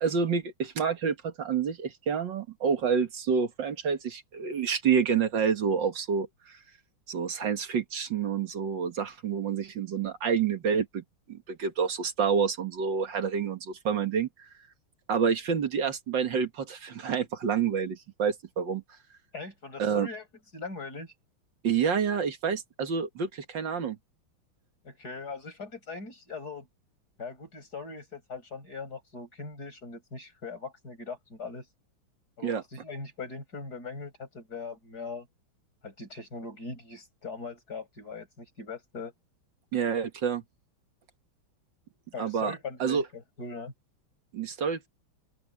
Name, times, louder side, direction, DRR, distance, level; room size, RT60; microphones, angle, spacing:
voice 1, 0.0-6.6 7.1-11.0 11.3-14.3 15.1-18.8 19.8-20.1 21.6-24.0 32.4-32.6 39.7-40.4 42.2-42.5 42.8-43.0 44.3-44.9, right 6 dB, 65° right, 2.3 m, -28 dB
voice 2, 19.3-20.2 20.5-21.1 24.8-26.7 27.2-31.6 32.4-35.3 35.8-39.1 42.1-43.7, left 4 dB, 50° left, 8.1 m, -40 dB
open air
omnidirectional pair, 2.2 m